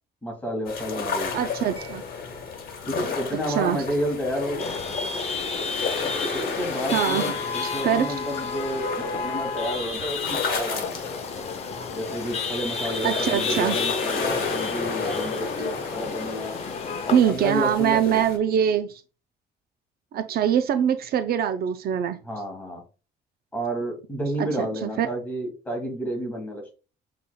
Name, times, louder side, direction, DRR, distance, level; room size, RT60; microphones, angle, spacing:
voice 1, 0.2-1.4 2.8-4.7 6.3-11.0 11.9-16.6 17.1-18.2 22.2-22.8 23.5-26.7, equal, 10° left, 1.5 m, -30 dB
sound 1, 0.7-18.4, left 5 dB, 55° left, 1.2 m, -32 dB
voice 2, 1.3-2.0 3.6-3.8 6.9-7.3 7.8-8.1 13.0-13.8 17.1-19.0 20.1-22.2 24.4-25.1, right 9 dB, 60° right, 0.4 m, -23 dB
Mallet percussion, 1.8-9.1, equal, 35° right, 2.5 m, -57 dB
Chatter / Vehicle horn car horn honking / Traffic noise roadway noise, 4.6-17.2, left 4 dB, 35° left, 0.6 m, -32 dB
6.9 x 3.3 x 2.2 m
cardioid pair, 155°, 18 cm